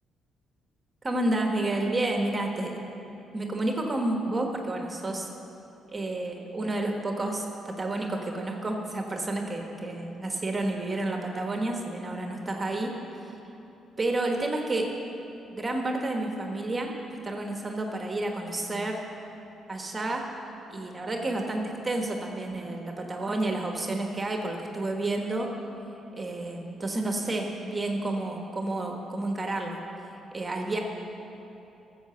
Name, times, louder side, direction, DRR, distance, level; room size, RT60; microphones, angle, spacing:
voice 1, 1.0-2.8 3.3-5.3 5.9-12.9 13.2-13.4 14.0-14.9 15.5-16.9 17.2-19.0 19.7-20.2 20.7-25.5 26.2-29.8 30.3-30.8, right 2 dB, 25° right, 2 dB, 1.4 m, -30 dB
13.5 x 7.5 x 6.9 m, 3.0 s
cardioid pair, 90°, 0 cm